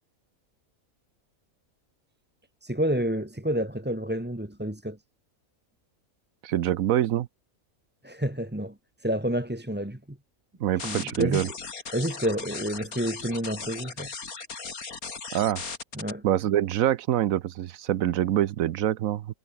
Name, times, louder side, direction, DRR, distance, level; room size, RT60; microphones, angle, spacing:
voice 1, 2.6-5.0 8.0-8.7 9.0-10.2 10.8-11.6 11.9-14.1 15.9-16.2, equal, 5° right, 1.6 m, -29 dB
voice 2, 6.4-7.3 10.6-11.5 15.3-15.6 16.2-19.3, right 12 dB, 75° right, 1.1 m, -25 dB
sound 1, 10.8-16.1, left 5 dB, 80° left, 2.9 m, -37 dB
omnidirectional pair, 1.5 m